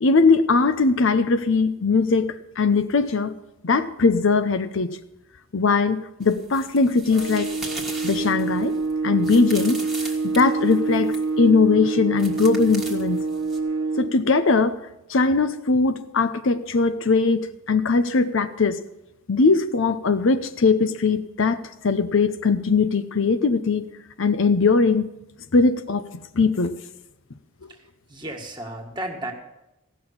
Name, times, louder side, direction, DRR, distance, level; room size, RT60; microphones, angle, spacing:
voice 1, 0.0-3.4 3.6-5.0 5.5-7.5 8.0-8.8 9.0-9.8 10.2-13.2 14.0-14.8 15.1-18.8 19.3-23.9 24.2-25.1 25.5-26.1 26.3-26.8, left 4 dB, 60° left, 0.6 m, -20 dB
sound 1, 6.2-11.3 12.2-13.6, right 2 dB, ahead, 1.6 m, -38 dB
sound 2, 7.1-14.2, right 4 dB, 75° right, 1.0 m, -26 dB
voice 2, 27.7-29.3, right 1 dB, 20° right, 1.8 m, -34 dB
16.5 x 6.2 x 8.6 m
head